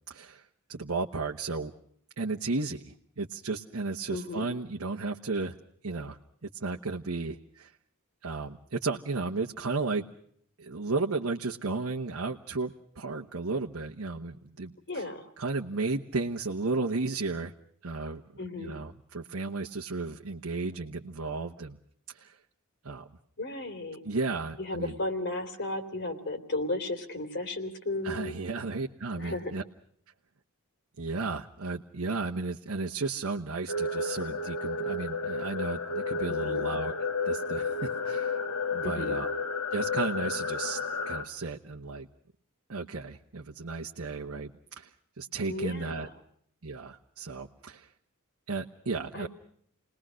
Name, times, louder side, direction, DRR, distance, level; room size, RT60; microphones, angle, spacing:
voice 1, 0.1-1.7 2.2-5.6 5.8-7.7 8.2-10.0 10.6-15.1 15.4-17.5 17.8-18.2 18.6-21.8 22.1-22.4 22.8-23.1 24.0-24.9 28.0-29.6 31.0-37.0 37.2-38.4 38.7-39.3 39.7-40.8 41.1-42.1 42.7-44.5 44.8-46.1 46.6-47.9 48.5-49.3, right 3 dB, 70° right, 2 dB, 1.1 m, -34 dB
voice 2, 4.1-4.4 14.9-15.3 18.4-18.7 23.4-24.0 24.6-28.3 29.2-29.5 36.3-36.6 38.8-39.2 45.5-46.1 49.1-49.3, left 2 dB, 55° left, 8 dB, 3.2 m, -34 dB
sound 1, 33.7-41.2, left 3 dB, 80° left, 2.4 m, -32 dB
29.0 x 20.0 x 6.3 m, 0.66 s
head